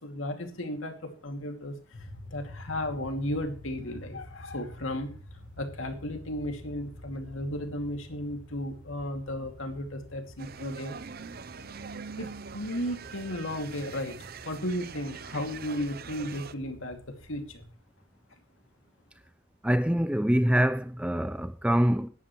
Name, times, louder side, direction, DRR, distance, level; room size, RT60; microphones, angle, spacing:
voice 1, 0.0-5.1 5.6-11.0 12.2-17.7, left 1 dB, 70° left, 2.5 m, -35 dB
sound 1, 1.9-17.7, left 1 dB, 40° left, 1.7 m, -49 dB
sound 2, 10.4-16.5, right 5 dB, 45° right, 0.7 m, -43 dB
voice 2, 19.6-22.1, equal, 5° right, 0.6 m, -25 dB
16.5 x 11.5 x 3.2 m
head